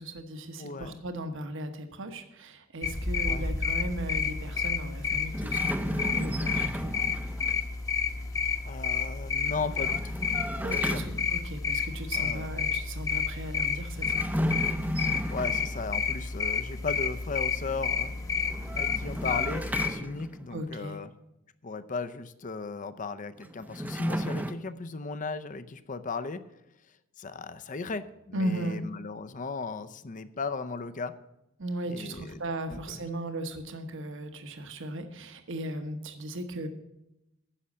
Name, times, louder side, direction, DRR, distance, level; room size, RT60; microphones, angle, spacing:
voice 1, 0.0-6.9 10.6-14.3 20.5-21.0 28.3-28.8 31.6-36.7, right 1 dB, 60° right, 7 dB, 1.2 m, -37 dB
voice 2, 0.6-1.0 3.2-3.5 8.6-10.2 10.7-11.1 12.1-12.5 15.3-18.2 18.7-21.1 21.6-26.4 27.2-31.1 31.9-32.4 32.7-33.1, left 4 dB, 40° left, 12 dB, 0.6 m, -36 dB
sound 1, 2.8-19.9, left 5 dB, 15° left, 0.9 m, -30 dB
sound 2, 5.3-7.6 9.5-11.5 14.0-16.0 18.4-20.6 23.4-24.5, equal, 10° right, 0.6 m, -34 dB
10.0 x 6.4 x 8.4 m, 0.89 s
head